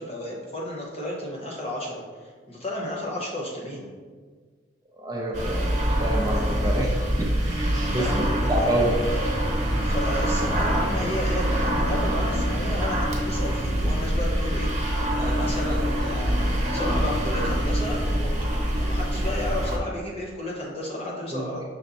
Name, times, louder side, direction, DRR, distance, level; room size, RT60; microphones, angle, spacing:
voice 1, 0.0-2.0 2.5-3.9 7.9-8.2 8.6-8.7 9.8-18.5 18.8-21.6, left 1 dB, 35° left, -3 dB, 0.9 m, -32 dB
voice 2, 5.0-6.9 7.2-8.1 8.5-8.9 21.3-21.5, right 1 dB, 20° right, -1 dB, 0.5 m, -27 dB
sound 1, 5.3-19.8, equal, 40° right, 0.8 m, -25 dB
6.0 x 2.1 x 4.0 m, 1.5 s
head